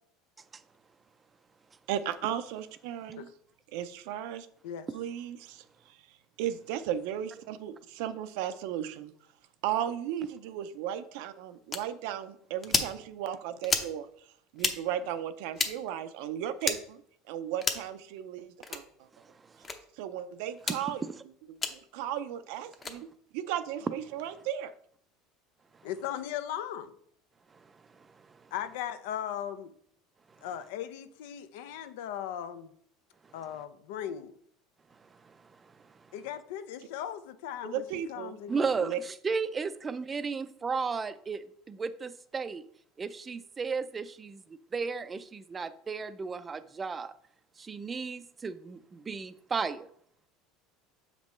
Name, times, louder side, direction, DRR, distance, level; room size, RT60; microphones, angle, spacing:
voice 1, 1.9-3.3 3.7-4.5 4.9-6.0 6.4-9.1 9.6-14.1 14.5-17.0 17.3-19.1 20.0-21.0 21.5-23.1 23.3-24.7 37.7-38.4 38.8-39.0, right 10 dB, 75° right, 0.5 m, -35 dB
sound 1, 11.7-11.8 12.6-12.9 13.6-13.9 14.6-14.8 15.5-15.7 16.6-16.8 17.6-17.9 18.6-18.8 19.6-19.8 20.6-20.8 21.6-21.7 22.7-22.9, left 4 dB, 25° left, 0.7 m, -30 dB
voice 2, 19.1-19.7 20.8-20.9 25.7-25.9 27.5-28.5 30.4-30.5 33.2-33.4 34.9-36.1 38.5-42.6 43.0-47.1 47.6-49.9, right 5 dB, 20° right, 0.4 m, -35 dB
voice 3, 25.8-26.9 28.5-29.7 30.4-32.7 33.3-34.3 36.1-38.7, left 10 dB, 85° left, 0.6 m, -38 dB
7.3 x 5.2 x 3.1 m
supercardioid pair, 140°, 0 cm